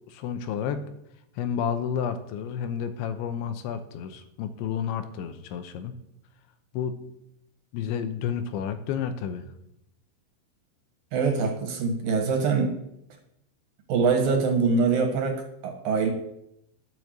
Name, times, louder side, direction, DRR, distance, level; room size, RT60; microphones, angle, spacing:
voice 1, 0.1-0.8 1.4-6.0 6.7-7.0 7.7-9.4, left 8 dB, 90° left, 9 dB, 3.2 m, -31 dB
voice 2, 11.1-12.7 13.9-16.1, right 4 dB, 60° right, 3 dB, 2.9 m, -24 dB
11.0 x 7.0 x 7.9 m, 0.79 s
omnidirectional pair, 5.3 m